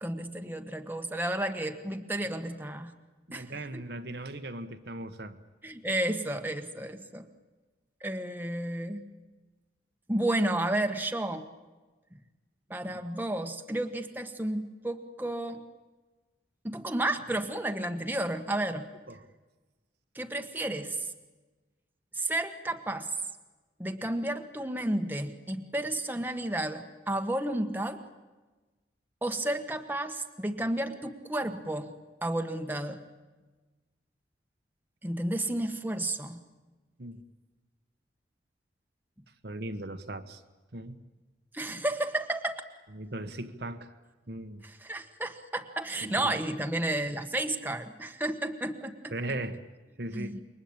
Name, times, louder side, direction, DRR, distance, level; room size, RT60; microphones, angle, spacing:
voice 1, 0.0-2.9 3.3-3.8 5.6-7.3 8.0-9.1 10.1-11.5 12.7-15.6 16.6-18.9 20.1-21.1 22.1-23.1 23.8-28.0 29.2-31.9 32.2-33.0 35.0-36.4 41.5-42.6 44.6-49.1 50.1-50.4, right 1 dB, 10° right, 1.5 m, -32 dB
voice 2, 3.3-5.4 19.1-19.2 37.0-37.2 39.4-40.4 40.7-41.0 42.9-43.9 44.3-44.6 46.0-46.3 49.1-49.6 50.0-50.4, right 1 dB, 60° right, 1.4 m, -38 dB
28.0 x 23.0 x 8.8 m
head